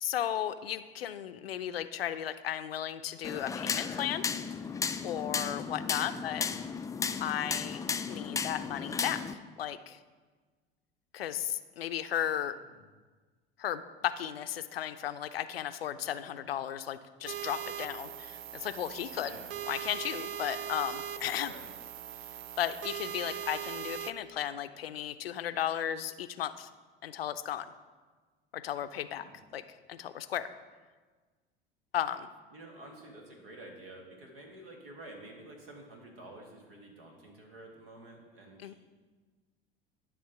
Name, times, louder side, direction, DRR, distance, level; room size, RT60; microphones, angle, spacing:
voice 1, 0.0-4.2 5.0-6.5 7.2-10.0 11.1-12.6 13.6-19.3 19.7-21.5 22.6-26.7 27.0-27.7 28.5-29.2 29.5-29.6 29.9-30.5 31.9-32.3 38.6-38.7, left 10 dB, 85° left, 12 dB, 0.5 m, -35 dB
sound 1, 3.2-9.3, left 5 dB, 10° left, 0.3 m, -34 dB
voice 2, 12.5-12.8 19.2-19.5 21.4-21.7 29.2-29.4 32.5-38.7, right 1 dB, 75° right, 1 dB, 1.8 m, -50 dB
sound 2, 17.3-24.1, right 10 dB, 50° right, 0.5 m, -40 dB
11.0 x 3.6 x 5.8 m, 1.4 s
hypercardioid pair, 75°, 29 cm